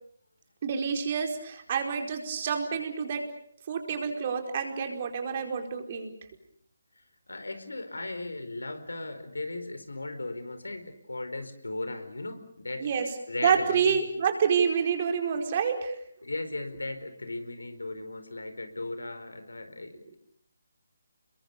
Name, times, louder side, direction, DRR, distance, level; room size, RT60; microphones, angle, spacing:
voice 1, 0.6-3.2 3.7-6.1 12.8-13.1 13.4-15.9, right 6 dB, 35° right, 4 dB, 4.7 m, -28 dB
voice 2, 7.3-14.0 16.2-20.2, left 2 dB, 75° left, 9 dB, 4.6 m, -37 dB
29.5 x 22.5 x 7.2 m, 0.67 s
figure-of-eight pair, 150°, 0 cm